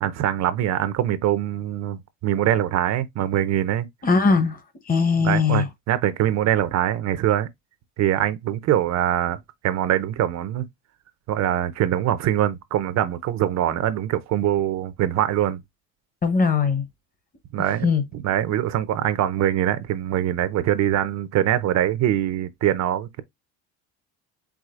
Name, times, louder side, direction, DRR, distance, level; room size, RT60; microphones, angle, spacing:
voice 1, 0.0-3.9 5.2-7.5 8.0-10.7 11.3-15.6 17.5-17.9 18.2-23.2, right 11 dB, 55° right, 0.7 m, -23 dB
voice 2, 4.0-4.6 4.8-5.7 16.2-16.9 17.6-18.0, left 5 dB, 25° left, 1.0 m, -20 dB
4.9 x 3.7 x 2.5 m
cardioid pair, 115°, 33 cm